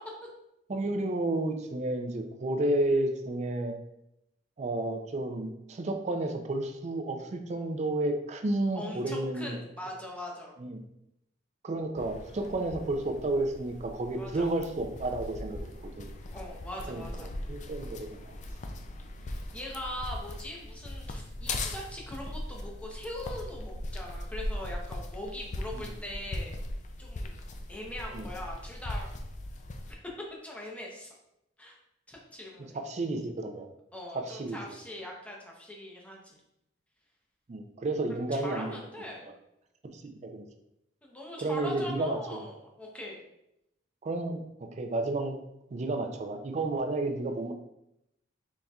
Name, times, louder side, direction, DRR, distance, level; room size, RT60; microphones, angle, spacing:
voice 1, 0.7-3.8 4.6-9.5 10.6-10.8 11.6-15.6 16.0-16.1 16.9-18.4 25.7-25.9 28.1-28.3 32.7-33.7 34.1-34.6 37.5-38.8 39.8-40.4 41.4-42.4 44.0-45.3 45.7-47.5, right 2 dB, 40° right, 6 dB, 0.4 m, -31 dB
voice 2, 8.7-10.5 14.2-14.5 16.3-17.3 19.2-26.5 27.0-27.4 27.7-29.1 29.9-31.1 31.6-31.8 32.1-32.8 33.9-36.4 38.3-39.3 41.0-43.2, left 1 dB, 5° left, -2 dB, 0.7 m, -41 dB
sound 1, 12.0-29.9, left 1 dB, 40° left, 0.3 m, -39 dB
4.0 x 3.5 x 2.3 m, 0.83 s
head